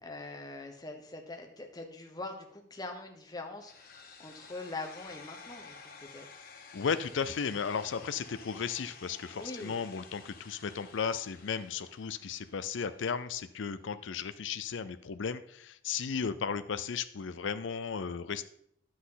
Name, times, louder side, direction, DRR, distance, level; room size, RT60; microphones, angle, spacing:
voice 1, 0.0-6.4 9.4-9.8, left 2 dB, 20° left, 3 dB, 1.2 m, -43 dB
sound 1, 3.6-13.6, left 4 dB, 50° left, 1.3 m, -52 dB
voice 2, 6.7-18.4, left 6 dB, 80° left, 12 dB, 0.5 m, -35 dB
10.5 x 7.7 x 3.9 m, 0.69 s
head